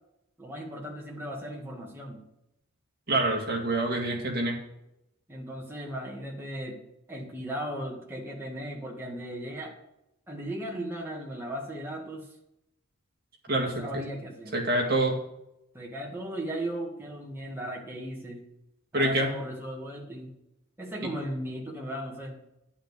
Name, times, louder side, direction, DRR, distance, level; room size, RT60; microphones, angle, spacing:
voice 1, 0.4-2.2 5.3-6.8 7.1-9.7 10.3-12.3 13.5-14.5 15.7-18.4 18.9-20.3 20.8-22.4, right 1 dB, 10° right, -2 dB, 1.8 m, -36 dB
voice 2, 3.1-4.6 13.5-13.8 14.5-15.1 18.9-19.3 21.0-21.1, right 1 dB, 45° right, 0 dB, 2.0 m, -26 dB
10.5 x 5.8 x 6.7 m, 0.85 s
head